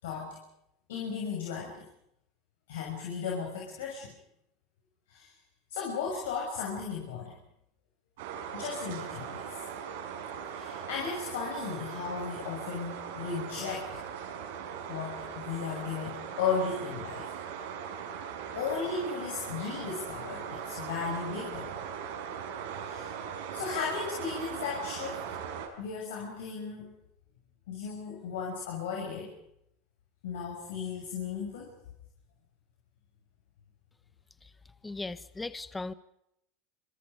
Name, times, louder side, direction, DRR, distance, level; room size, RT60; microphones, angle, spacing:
voice 1, 0.0-0.4 0.9-1.9 2.7-4.1 5.1-5.3 5.7-7.4 8.5-9.5 10.5-14.0 14.9-17.3 18.5-22.0 22.8-23.1 23.5-25.4 25.8-26.9 27.7-29.3 30.2-31.8, left 5 dB, 85° left, -1 dB, 6.2 m, -35 dB
sound 1, 8.2-25.7, right 7 dB, 80° right, 5.4 m, -39 dB
voice 2, 34.8-35.9, left 3 dB, 10° left, 14 dB, 1.0 m, -38 dB
27.0 x 26.0 x 5.1 m, 0.78 s
supercardioid pair, 110°, 0 cm